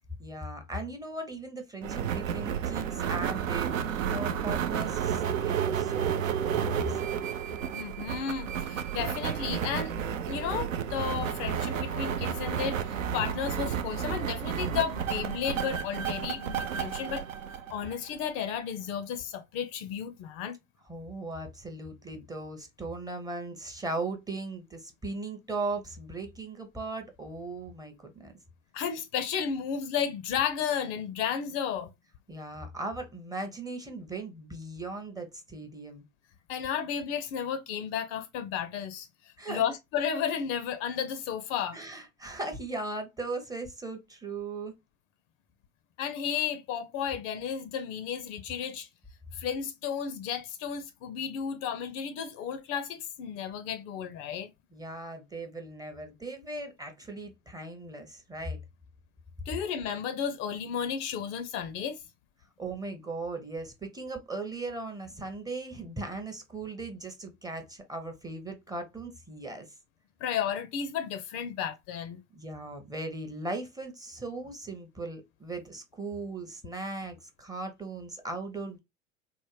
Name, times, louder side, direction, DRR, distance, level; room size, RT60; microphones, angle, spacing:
voice 1, 0.2-6.2 6.4-7.2 20.9-28.3 32.3-36.0 39.4-39.6 41.7-44.7 54.7-58.6 62.6-69.7 72.3-78.8, right 2 dB, 10° right, 0.6 m, -38 dB
sound 1, 1.8-18.3, right 8 dB, 75° right, 0.5 m, -31 dB
voice 2, 7.7-9.9 10.3-12.8 13.1-17.2 17.7-20.6 28.7-31.9 36.5-41.8 46.0-48.9 49.3-54.5 59.5-62.0 70.2-72.2, left 8 dB, 40° left, 0.5 m, -33 dB
3.6 x 2.1 x 3.0 m
figure-of-eight pair, 80°, 39 cm